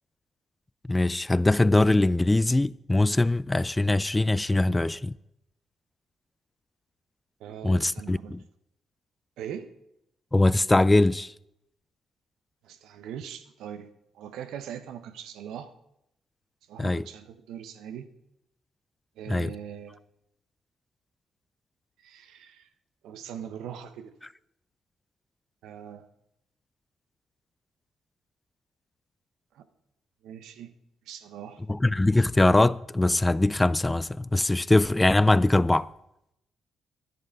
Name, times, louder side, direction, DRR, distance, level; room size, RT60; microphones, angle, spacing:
voice 1, 0.9-5.1 7.6-8.4 10.3-11.3 16.8-17.0 19.3-19.5 31.7-35.9, left 2 dB, 20° left, 0.4 m, -22 dB
voice 2, 7.4-8.4 9.4-9.7 12.6-13.9 14.1-15.7 16.7-18.1 19.2-20.0 22.0-22.7 23.0-24.1 25.6-26.1 29.5-29.7 30.2-30.7 31.1-31.6, right 9 dB, 75° right, 0.8 m, -41 dB
10.5 x 10.5 x 5.1 m
hypercardioid pair, 50°, 0 cm